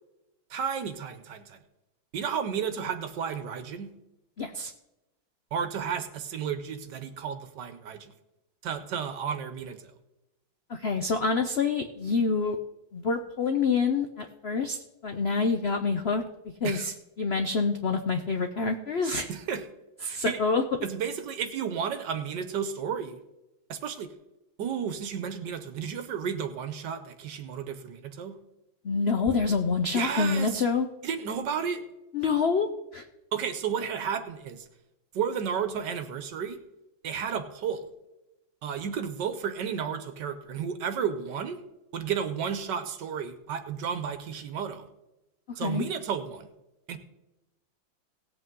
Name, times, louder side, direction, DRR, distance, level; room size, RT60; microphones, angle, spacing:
voice 1, 0.5-1.6 2.1-3.9 5.5-8.1 8.6-9.9 16.6-16.9 19.3-19.6 20.1-20.4 20.8-23.2 23.7-24.1 24.6-28.3 29.9-30.6 31.0-31.8 33.3-34.6 35.1-36.6 37.0-37.9 38.6-41.6 41.9-44.9 45.6-46.5 46.9-47.0, right 7 dB, 70° right, 9 dB, 1.4 m, -32 dB
voice 2, 4.4-4.7 10.7-12.6 12.9-16.2 16.6-16.9 17.2-19.3 20.0-20.6 28.8-30.9 32.1-33.0 45.6-45.8, left 4 dB, 85° left, 6 dB, 0.5 m, -27 dB
17.5 x 8.1 x 3.7 m, 0.95 s
omnidirectional pair, 2.1 m